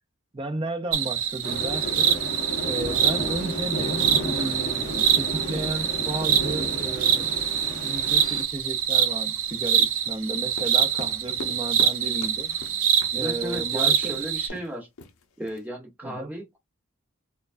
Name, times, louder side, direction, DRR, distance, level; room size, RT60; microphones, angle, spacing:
voice 1, 0.3-2.1 2.6-7.4 7.8-12.6 13.1-14.2 16.0-16.4, right 2 dB, 25° right, 0.5 m, -33 dB
sound 1, 0.9-14.5, right 9 dB, 80° right, 0.6 m, -25 dB
sound 2, 1.4-8.4, equal, 55° left, 1.2 m, -33 dB
sound 3, 10.5-13.2 13.5-13.7 14.0-14.2 14.5-14.7 15.0-15.6, left 3 dB, 80° left, 0.7 m, -41 dB
voice 2, 13.1-14.9 15.4-16.6, equal, 10° right, 1.0 m, -35 dB
4.3 x 2.2 x 2.5 m
head